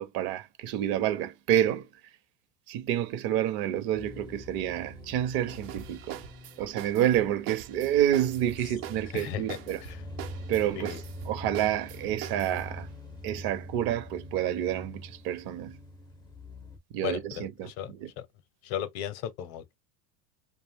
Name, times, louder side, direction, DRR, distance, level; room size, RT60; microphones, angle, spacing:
voice 1, 0.0-1.9 2.7-6.2 6.6-9.8 10.5-12.9 13.2-15.8 16.9-18.1, right 11 dB, 50° right, 0.7 m, -29 dB
sound 1, 3.9-16.8, equal, 10° left, 0.4 m, -44 dB
sound 2, 5.5-12.7, right 12 dB, 85° right, 0.8 m, -43 dB
voice 2, 9.1-10.0 10.8-11.0 17.0-18.3 18.6-19.8, left 10 dB, 50° left, 0.7 m, -36 dB
2.4 x 2.2 x 3.3 m
supercardioid pair, 130°, 48 cm